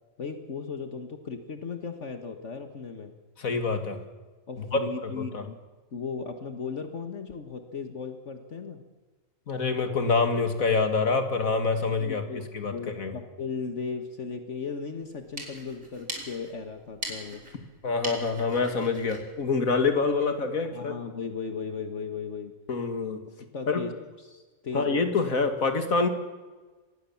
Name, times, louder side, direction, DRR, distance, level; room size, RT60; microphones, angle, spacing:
voice 1, 0.2-3.1 4.5-5.6 5.9-8.8 12.0-17.4 20.7-22.5 23.4-23.9 24.2-25.1, left 5 dB, 60° left, 7 dB, 1.8 m, -36 dB
voice 2, 3.4-4.0 4.7-5.4 9.5-12.2 12.5-13.1 17.8-20.9 22.7-23.2 23.7-23.8 24.7-26.1, left 4 dB, 80° left, 7 dB, 2.6 m, -26 dB
sound 1, 15.1-20.4, right 1 dB, 70° right, 4.7 m, -42 dB
24.5 x 19.5 x 7.2 m, 1.3 s
omnidirectional pair, 1.4 m